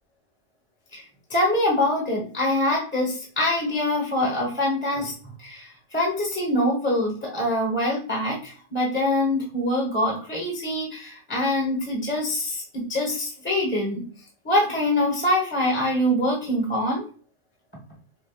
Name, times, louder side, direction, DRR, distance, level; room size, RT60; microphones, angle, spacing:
voice 1, 1.3-5.1 5.4-14.1 14.4-17.0, left 1 dB, 10° left, -4 dB, 1.0 m, -24 dB
4.9 x 2.3 x 2.3 m, 0.41 s
omnidirectional pair, 1.3 m